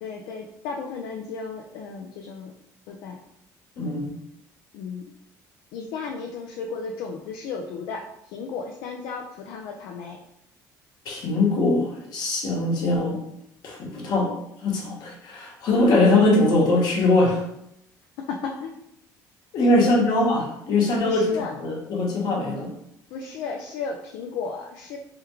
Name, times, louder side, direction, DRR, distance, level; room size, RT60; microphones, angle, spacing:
voice 1, 0.0-2.5 2.9-3.2 4.7-5.0 5.7-10.2 18.3-18.7 19.6-20.0 21.0-21.5 23.1-25.0, left 5 dB, 80° left, 1 dB, 0.4 m, -34 dB
voice 2, 3.8-4.1 11.0-13.2 13.6-14.3 14.6-17.4 19.5-22.7, left 2 dB, 65° left, -2 dB, 1.1 m, -22 dB
3.5 x 2.2 x 3.0 m, 0.77 s
supercardioid pair, 85°, 8 cm